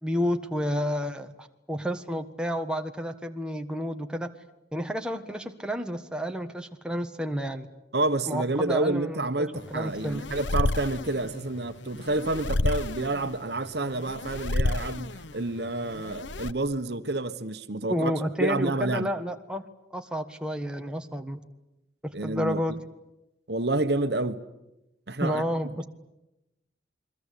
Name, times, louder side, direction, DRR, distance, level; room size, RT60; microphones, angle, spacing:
voice 1, 0.0-4.3 4.7-7.7 8.3-9.3 9.7-10.3 17.9-19.7 19.9-21.4 22.0-22.8 25.2-25.9, equal, 5° right, 1.4 m, -30 dB
voice 2, 7.9-18.1 18.4-19.1 22.1-22.8 23.5-24.4 25.1-25.4, right 2 dB, 60° right, 1.3 m, -29 dB
sound 1, 9.6-16.5, left 2 dB, 80° left, 0.9 m, -31 dB
29.0 x 22.5 x 8.5 m
head